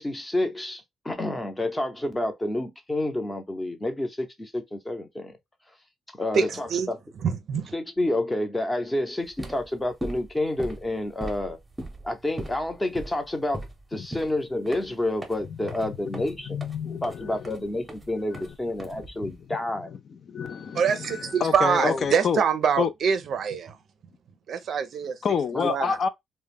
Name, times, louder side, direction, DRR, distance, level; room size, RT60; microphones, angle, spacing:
voice 1, 0.0-5.3 6.2-7.0 7.7-11.6 12.0-13.6 13.9-16.6 17.0-19.9 21.8-22.0 25.5-25.7, left 1 dB, 15° left, 0.7 m, -29 dB
voice 2, 6.3-6.9 7.2-7.7 20.7-23.8 24.5-25.2 25.7-26.0, right 7 dB, 60° right, 0.4 m, -25 dB
sound 1, 9.2-19.4, right 1 dB, 15° right, 0.8 m, -40 dB
voice 3, 16.1-17.4 18.3-18.4 19.0-19.1 20.3-22.4 22.8-22.9 25.2-26.1, left 6 dB, 50° left, 0.4 m, -28 dB
2.3 x 2.1 x 3.3 m
cardioid pair, 90°, 0 cm